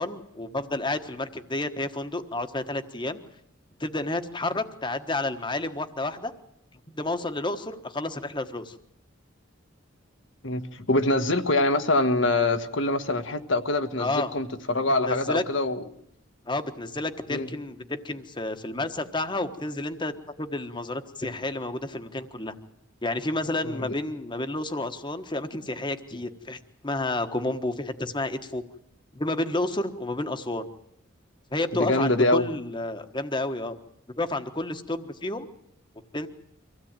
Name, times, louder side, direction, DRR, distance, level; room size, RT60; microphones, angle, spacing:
voice 1, 0.0-3.2 3.8-6.3 6.9-8.7 14.0-14.3 15.0-15.4 16.5-22.5 23.0-28.6 29.1-30.7 31.5-33.7 34.2-35.5 36.1-36.3, left 2 dB, 25° left, 8 dB, 1.3 m, -30 dB
voice 2, 10.4-15.8 17.3-17.5 23.6-23.9 31.8-32.5, left 2 dB, 65° left, 9 dB, 1.5 m, -24 dB
25.0 x 16.0 x 9.0 m, 0.76 s
head